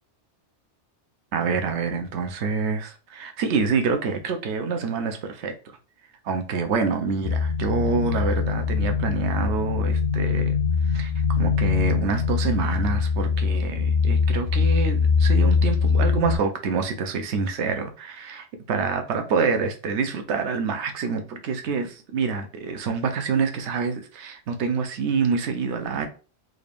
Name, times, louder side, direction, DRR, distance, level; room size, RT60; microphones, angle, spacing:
voice 1, 1.3-5.5 6.2-10.6 10.8-26.1, right 5 dB, 70° right, 1.0 m, -27 dB
sound 1, 7.2-16.4, left 5 dB, 60° left, 0.8 m, -22 dB
3.9 x 2.5 x 3.4 m
omnidirectional pair, 1.2 m